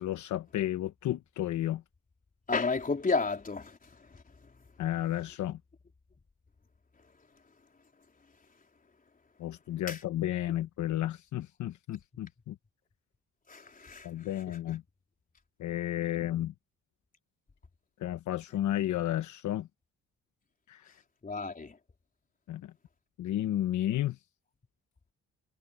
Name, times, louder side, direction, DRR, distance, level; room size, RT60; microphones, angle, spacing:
voice 1, 0.0-1.8 4.8-5.6 9.4-12.5 14.0-14.8 15.6-16.5 18.0-19.7 20.7-20.8 22.5-22.6 23.2-24.2, left 13 dB, 75° left, 1.1 m, -32 dB
voice 2, 2.5-3.7 9.9-10.0 13.5-14.0 21.2-21.7, left 4 dB, 30° left, 4.1 m, -31 dB
cardioid pair, 90°, 30 cm